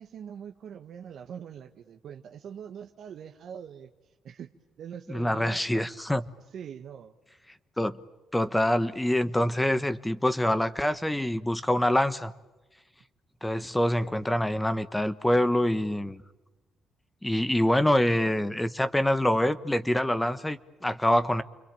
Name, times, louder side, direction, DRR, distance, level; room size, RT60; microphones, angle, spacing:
voice 1, 0.0-3.9 4.2-4.5 4.8-6.0 6.5-7.2, right 8 dB, 65° right, 1.4 m, -43 dB
voice 2, 5.1-6.2 7.8-8.0 8.3-12.3 13.4-16.2 17.2-21.4, left 1 dB, 10° left, 1.2 m, -25 dB
29.5 x 22.5 x 9.0 m
supercardioid pair, 75°, 0 cm